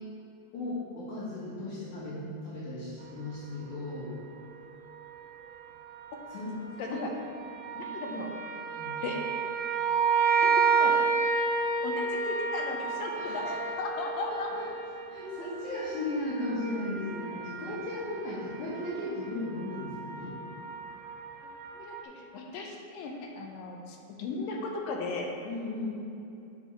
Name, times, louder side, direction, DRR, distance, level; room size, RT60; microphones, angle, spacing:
voice 1, 0.5-4.1 6.3-6.6 6.9-7.0 8.7-9.0 13.1-13.6 14.3-14.7 15.1-20.4 25.4-25.9, left 2 dB, 60° left, -11 dB, 2.9 m, -36 dB
sound 1, 4.9-5.1 5.9-22.0, right 5 dB, 85° right, 1.5 m, -31 dB
voice 2, 6.8-7.1 7.8-8.3 9.0-9.3 10.4-10.9 11.8-13.5 13.8-14.5 15.4-15.5 21.7-25.3, left 3 dB, 80° left, 1 dB, 2.4 m, -36 dB
7.9 x 4.7 x 5.5 m, 2.8 s
omnidirectional pair, 4.2 m